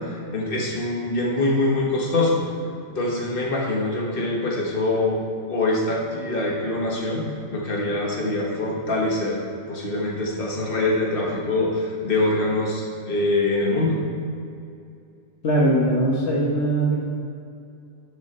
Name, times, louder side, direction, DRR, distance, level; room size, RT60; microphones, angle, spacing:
voice 1, 0.0-2.4 2.9-5.2 5.5-9.4 9.7-14.0, left 2 dB, 45° left, -2 dB, 1.7 m, -24 dB
voice 2, 15.4-17.0, right 1 dB, 65° left, -3 dB, 1.5 m, -20 dB
12.0 x 7.2 x 4.4 m, 2.5 s
omnidirectional pair, 1.3 m